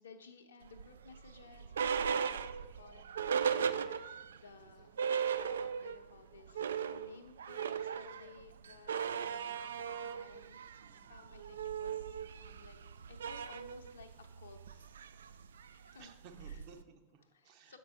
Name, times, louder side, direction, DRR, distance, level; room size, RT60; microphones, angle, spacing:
voice 1, 0.0-10.6 11.1-12.8 13.1-14.9 15.7-16.1 16.4-16.6 17.3-17.8, left 4 dB, 70° left, 6 dB, 0.7 m, -57 dB
sound 1, 0.7-4.4 4.7-4.8 5.0-6.1 6.4-16.8, right 7 dB, 65° right, 0.3 m, -37 dB
voice 2, 10.8-11.3 15.1-15.4 16.0-17.8, right 5 dB, 45° right, 5 dB, 0.9 m, -58 dB
7.4 x 5.2 x 4.2 m, 1.0 s
figure-of-eight pair, 90°, 0 cm